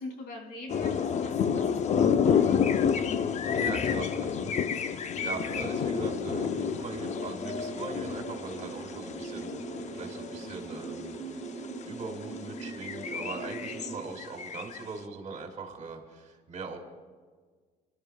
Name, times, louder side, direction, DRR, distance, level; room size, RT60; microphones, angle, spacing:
voice 1, 0.0-2.7 9.1-9.4, left 2 dB, 85° left, 3 dB, 2.5 m, -44 dB
sound 1, 0.7-11.2 11.6-11.8 12.2-14.8, left 7 dB, 45° left, 0.6 m, -29 dB
voice 2, 3.4-9.6 9.9-11.2 11.9-16.8, right 4 dB, 45° right, 4 dB, 2.1 m, -40 dB
sound 2, 5.2-14.0, right 3 dB, 5° left, 3.4 m, -41 dB
30.0 x 12.0 x 2.3 m, 1.5 s
cardioid pair, 110°, 17 cm